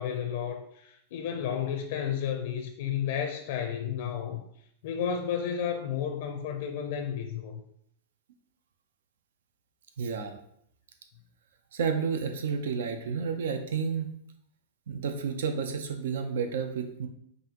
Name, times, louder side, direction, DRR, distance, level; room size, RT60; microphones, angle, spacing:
voice 1, 0.0-4.4 4.8-7.6, left 8 dB, 65° left, 6 dB, 0.5 m, -32 dB
voice 2, 10.0-10.4 11.7-14.1 14.9-17.1, right 6 dB, 80° right, 7 dB, 0.5 m, -31 dB
5.4 x 2.6 x 2.9 m, 0.70 s
supercardioid pair, 145°, 0 cm